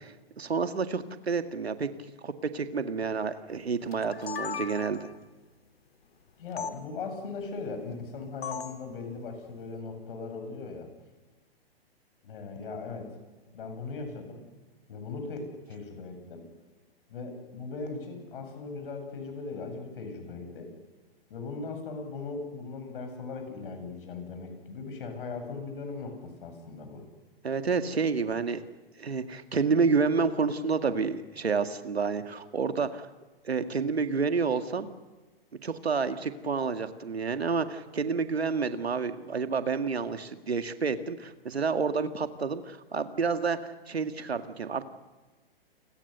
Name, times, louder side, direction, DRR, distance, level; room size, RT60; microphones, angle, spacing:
voice 1, 0.4-1.9 2.2-5.1 27.4-28.6 29.0-33.1 33.4-34.9 35.6-43.6 43.9-44.8, right 5 dB, 85° right, 9 dB, 1.9 m, -29 dB
sound 1, 3.9-5.2 6.6-6.7 8.4-8.8, left 7 dB, 75° left, 2.3 m, -37 dB
voice 2, 6.4-10.9 12.2-13.1 13.5-14.4 14.9-16.5 17.1-20.7 21.3-27.0, left 4 dB, 60° left, 5 dB, 7.9 m, -39 dB
29.5 x 21.5 x 6.8 m, 1.2 s
hypercardioid pair, 125°, 31 cm